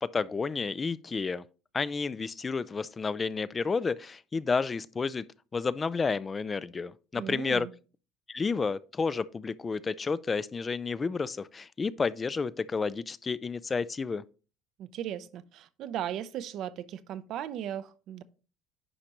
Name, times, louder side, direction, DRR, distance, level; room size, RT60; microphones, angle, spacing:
voice 1, 0.0-1.4 1.7-5.2 5.5-7.7 8.3-14.2, left 4 dB, 25° left, 0.3 m, -31 dB
voice 2, 7.2-7.7 14.8-18.2, right 10 dB, 60° right, 0.6 m, -37 dB
10.0 x 5.1 x 3.0 m
supercardioid pair, 105°, 0 cm